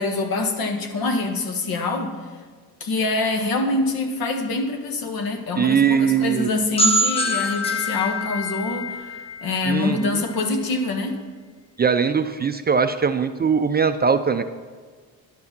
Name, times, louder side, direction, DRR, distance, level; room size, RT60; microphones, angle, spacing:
voice 1, 0.0-2.1 2.8-11.2, left 3 dB, 65° left, 5 dB, 1.5 m, -25 dB
voice 2, 5.6-6.5 9.7-10.2 11.8-14.4, right 6 dB, 25° right, 9 dB, 0.4 m, -20 dB
sound 1, 6.8-10.4, left 1 dB, 15° left, 0.7 m, -25 dB
11.0 x 8.3 x 5.9 m, 1.5 s
cardioid pair, 115°, 38 cm